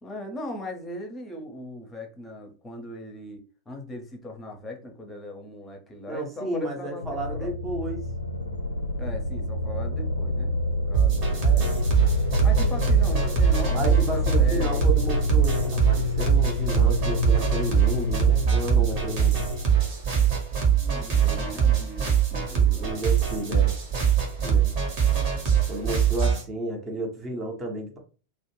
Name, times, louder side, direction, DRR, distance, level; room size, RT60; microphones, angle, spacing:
voice 1, 0.0-7.6 9.0-11.3 12.4-14.9 20.7-23.0, left 1 dB, 15° left, 3 dB, 0.7 m, -39 dB
voice 2, 6.1-8.1 11.4-11.8 13.7-19.4 22.6-23.7 24.4-24.7 25.7-28.0, right 2 dB, 20° right, 1 dB, 0.8 m, -32 dB
sound 1, 7.0-19.6, left 3 dB, 80° left, 0.4 m, -28 dB
sound 2, 10.9-26.4, right 8 dB, 45° right, 1.1 m, -23 dB
2.5 x 2.1 x 3.0 m, 0.36 s
figure-of-eight pair, 90°, 0 cm